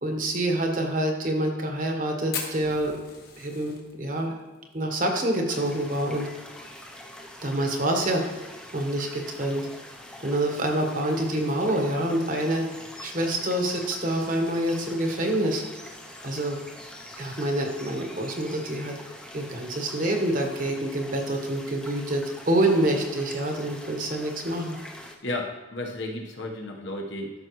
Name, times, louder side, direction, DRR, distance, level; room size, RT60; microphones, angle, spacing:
voice 1, 0.0-2.9 3.4-4.4 4.7-6.3 7.4-8.5 8.7-9.7 10.2-12.6 13.0-15.6 16.2-16.6 17.1-19.0 19.3-24.8, right 1 dB, 45° right, 2 dB, 1.2 m, -26 dB
Fire, 2.3-6.8 7.1-7.2 7.4-7.5 7.9-8.3 8.8-8.9 10.0-10.1, left 6 dB, 50° left, 1.4 m, -39 dB
sound 1, 5.5-25.2, left 1 dB, 5° left, 0.6 m, -44 dB
voice 2, 25.2-27.3, left 2 dB, 70° left, 0 dB, 1.3 m, -33 dB
13.0 x 5.8 x 3.1 m, 1.2 s
head